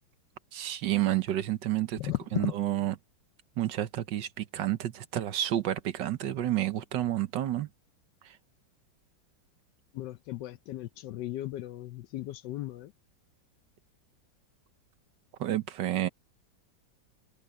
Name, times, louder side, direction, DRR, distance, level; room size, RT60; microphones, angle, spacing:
voice 1, 0.5-3.0 3.6-7.7 8.2-8.4 15.4-16.1, right 13 dB, 65° right, 1.5 m, -30 dB
voice 2, 2.0-2.5 9.9-12.9, left 16 dB, 75° left, 1.0 m, -36 dB
omnidirectional pair, 2.2 m